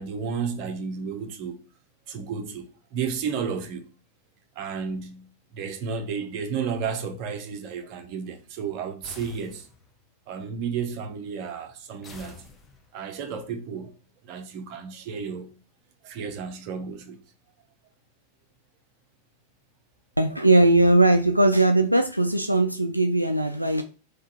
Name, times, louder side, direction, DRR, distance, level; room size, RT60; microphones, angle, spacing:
voice 1, 0.0-1.6 2.1-3.9 4.6-9.7 10.3-12.5 12.9-14.0 14.2-15.6 16.0-17.2, right 6 dB, 40° right, 0.8 m, -32 dB
sound 1, 9.0-10.0 12.0-13.1, left 4 dB, 20° left, 0.8 m, -47 dB
voice 2, 20.2-23.8, right 2 dB, 90° right, 0.3 m, -19 dB
3.6 x 3.4 x 4.1 m
figure-of-eight pair, 90°, 0 cm